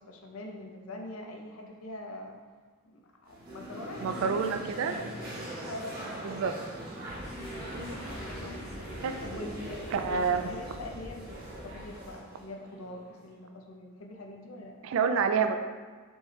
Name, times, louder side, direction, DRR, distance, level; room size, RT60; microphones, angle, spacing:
voice 1, 0.0-2.4 2.8-5.1 5.6-6.0 8.1-8.6 9.2-14.7, left 1 dB, 75° left, 2 dB, 0.6 m, -43 dB
sound 1, 3.3-13.3, right 1 dB, 45° right, 1.1 m, -41 dB
voice 2, 4.0-4.9 6.2-6.5 9.0-9.1 9.9-10.5 14.8-15.6, right 6 dB, 65° right, 7 dB, 0.3 m, -27 dB
sound 2, 7.0-12.2, equal, 30° left, 1.2 m, -45 dB
4.4 x 3.2 x 3.1 m, 1.4 s
head